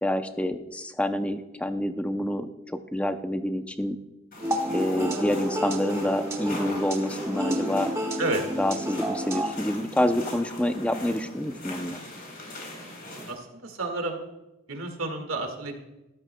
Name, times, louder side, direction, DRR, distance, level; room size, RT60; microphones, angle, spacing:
voice 1, 0.0-4.0 4.7-7.9 8.6-12.0, left 1 dB, 5° left, 8 dB, 0.5 m, -27 dB
sound 1, 4.3-13.3, left 1 dB, 45° left, 3.9 m, -40 dB
sound 2, 4.4-9.5, equal, 15° right, 1.0 m, -30 dB
voice 2, 13.3-14.2 14.7-15.7, right 2 dB, 85° right, 4 dB, 1.8 m, -30 dB
13.0 x 13.0 x 2.2 m, 0.97 s
head